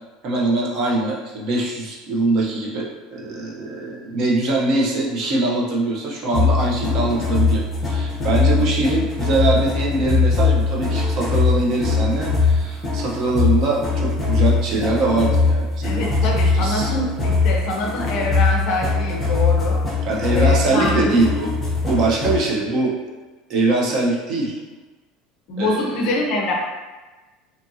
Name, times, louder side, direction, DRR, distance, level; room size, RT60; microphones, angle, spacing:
voice 1, 0.2-16.1 16.5-16.9 20.1-21.6 21.8-22.9 23.5-24.6 25.6-26.1, right 2 dB, 40° right, -2 dB, 0.5 m, -22 dB
sound 1, 6.3-22.5, left 4 dB, 10° left, 0.7 m, -21 dB
voice 2, 15.8-19.8 20.3-21.3 25.5-26.5, left 2 dB, 45° left, 0 dB, 0.5 m, -25 dB
2.7 x 2.5 x 2.6 m, 1.2 s
cardioid pair, 170°, 0 cm